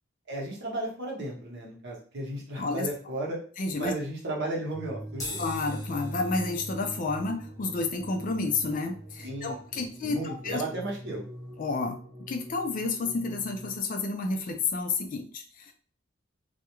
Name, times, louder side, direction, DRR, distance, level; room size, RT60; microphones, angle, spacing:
voice 1, 0.3-3.4 3.7-5.4 9.2-11.2, right 1 dB, 60° right, -2 dB, 0.9 m, -34 dB
voice 2, 2.6-2.9 3.6-3.9 5.4-10.6 11.6-12.0 12.3-15.7, left 3 dB, 45° left, 5 dB, 0.4 m, -30 dB
sound 1, 4.7-13.8, right 1 dB, 20° right, 0.6 m, -42 dB
sound 2, 5.1-11.7, left 2 dB, 20° left, 0.8 m, -46 dB
2.3 x 2.1 x 2.9 m, 0.42 s
head